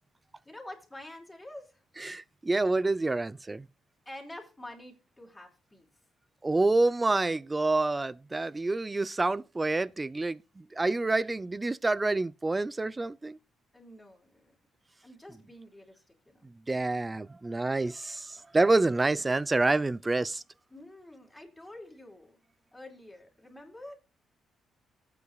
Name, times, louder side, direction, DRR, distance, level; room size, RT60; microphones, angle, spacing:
voice 1, 0.4-1.8 4.1-5.9 13.7-14.5 15.0-16.5 20.7-22.4 22.7-24.0, left 1 dB, 10° left, 4.2 m, -47 dB
voice 2, 2.0-3.7 6.4-13.4 16.4-20.4, right 2 dB, 20° right, 0.5 m, -28 dB
18.5 x 8.4 x 2.3 m
cardioid pair, 90°, 0 cm